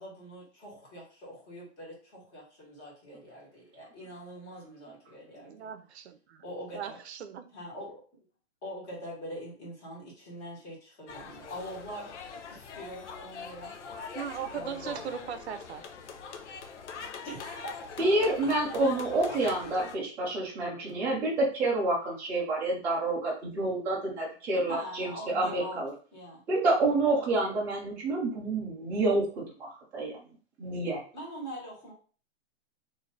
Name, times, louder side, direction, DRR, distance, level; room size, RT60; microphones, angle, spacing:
voice 1, 0.0-5.7 6.4-7.0 7.5-8.0 8.6-13.8 14.5-15.0 17.2-17.9 18.7-19.4 24.7-25.8 26.1-26.4 31.1-31.9, equal, 20° left, -5 dB, 1.5 m, -43 dB
voice 2, 5.3-6.4 6.7-7.5 14.1-15.9, right 8 dB, 70° right, 11 dB, 0.6 m, -38 dB
sound 1, 11.1-20.0, left 5 dB, 85° left, 0.8 m, -43 dB
voice 3, 18.0-25.9 26.5-30.2 30.6-31.0, right 2 dB, 5° right, -7 dB, 0.5 m, -28 dB
3.2 x 2.7 x 3.8 m, 0.40 s
hypercardioid pair, 170°, 34 cm